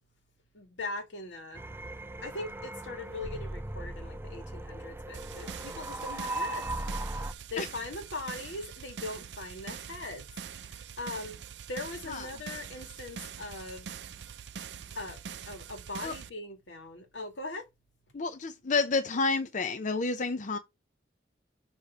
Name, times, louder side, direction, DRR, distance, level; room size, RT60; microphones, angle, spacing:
voice 1, 0.5-1.6 2.2-6.7 7.5-10.3 10.7-11.4 11.7-13.9 14.9-15.2 15.5-17.7, left 2 dB, 85° left, 1.9 m, -40 dB
sound 1, 1.5-7.3, right 2 dB, 15° right, 0.4 m, -38 dB
sound 2, 5.1-16.3, right 7 dB, 70° right, 0.5 m, -44 dB
voice 2, 18.1-20.6, left 4 dB, 45° left, 0.6 m, -29 dB
6.6 x 3.2 x 5.3 m
head